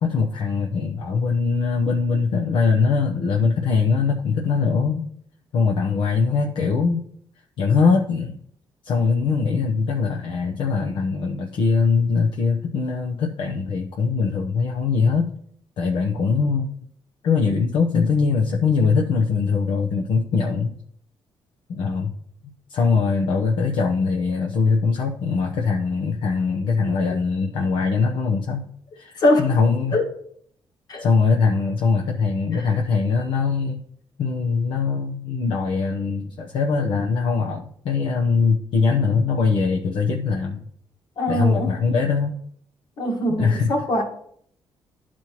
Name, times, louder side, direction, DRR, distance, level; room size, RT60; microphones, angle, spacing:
voice 1, 0.0-5.1 5.5-7.0 7.6-8.4 8.8-15.3 15.8-16.7 17.2-20.7 21.7-22.1 22.7-28.7 28.9-30.0 31.0-33.8 34.2-40.7 41.3-42.4 43.4-43.7, left 5 dB, 75° left, 1 dB, 0.8 m, -22 dB
voice 2, 29.2-29.5 29.9-30.1 30.9-31.1 32.5-32.7 41.2-41.7 43.0-44.0, left 1 dB, 55° left, 1 dB, 1.6 m, -22 dB
12.0 x 4.3 x 3.0 m, 0.64 s
cardioid pair, 135°, 8 cm